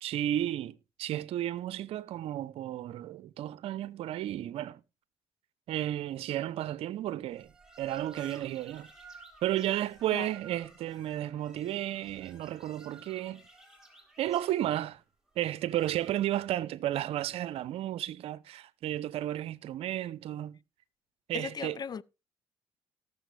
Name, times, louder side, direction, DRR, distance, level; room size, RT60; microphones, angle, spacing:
voice 1, 0.0-4.8 5.7-7.5 7.8-8.9 9.4-13.4 14.2-15.0 15.4-20.6 21.3-21.8, right 13 dB, 70° right, 0.8 m, -33 dB
sound 1, 7.3-16.5, right 3 dB, 5° right, 3.8 m, -55 dB
voice 2, 21.3-22.0, left 6 dB, 40° left, 0.6 m, -38 dB
18.0 x 6.9 x 3.3 m
hypercardioid pair, 60°, 11 cm